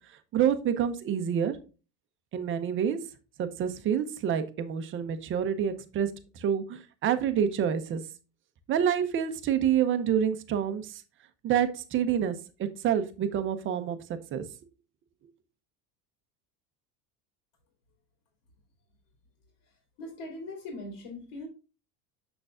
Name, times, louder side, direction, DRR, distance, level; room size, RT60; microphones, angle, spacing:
voice 1, 0.3-1.6 2.3-3.0 3.4-6.1 6.4-8.0 8.7-11.0 11.4-14.0 14.3-14.4, right 8 dB, 30° right, 10 dB, 0.7 m, -27 dB
voice 2, 20.0-21.5, left 2 dB, 55° left, 1 dB, 2.7 m, -40 dB
6.7 x 6.5 x 2.4 m, 0.33 s
cardioid pair, 160°, 44 cm